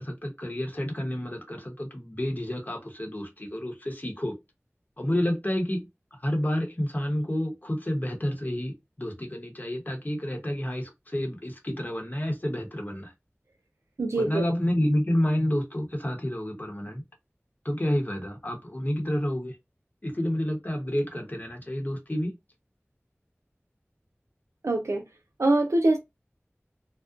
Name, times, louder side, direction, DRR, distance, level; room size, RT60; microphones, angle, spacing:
voice 1, 0.0-4.3 5.0-5.8 6.1-13.1 14.2-17.0 17.6-19.6 20.0-22.3, equal, 40° left, 0.9 m, -29 dB
voice 2, 14.0-14.4 24.6-25.0 25.4-26.0, right 2 dB, 80° right, 0.4 m, -23 dB
2.4 x 2.1 x 2.4 m
wide cardioid pair, 40°, 5 cm